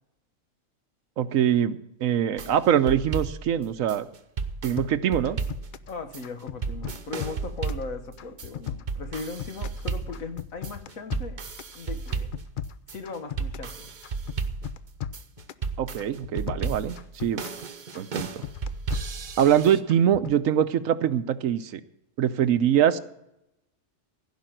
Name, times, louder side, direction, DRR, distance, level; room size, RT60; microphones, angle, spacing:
voice 1, 1.2-4.1 4.6-5.4 15.8-17.5 17.9-18.4 19.4-21.8 22.2-23.0, right 9 dB, 90° right, 12 dB, 1.2 m, -23 dB
sound 1, 2.4-19.8, right 4 dB, 40° right, 0.8 m, -34 dB
sound 2, 4.8-5.9 6.2-7.9 8.2-9.8 10.1-11.8 12.1-13.7 14.0-15.7 16.0-17.6 17.9-19.6 19.9-20.4, left 9 dB, 60° left, 0.5 m, -37 dB
voice 2, 5.9-11.4 11.7-12.3 12.9-13.9, left 4 dB, 90° left, 8 dB, 1.7 m, -38 dB
16.0 x 5.3 x 9.0 m, 0.81 s
omnidirectional pair, 1.4 m